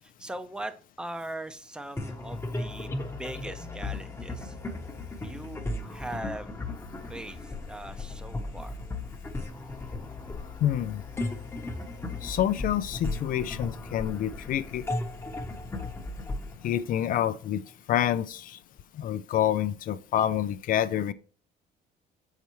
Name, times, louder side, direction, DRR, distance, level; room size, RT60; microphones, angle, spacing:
voice 1, 0.0-4.6 5.2-6.6 7.1-8.7, right 1 dB, 5° right, 0.7 m, -40 dB
sound 1, 2.0-17.6, left 2 dB, 15° left, 1.0 m, -36 dB
voice 2, 10.6-11.0 12.2-14.8 16.6-17.6 17.9-18.6 18.9-21.1, left 11 dB, 55° left, 0.4 m, -27 dB
6.9 x 5.7 x 3.1 m
cardioid pair, 110°, 17 cm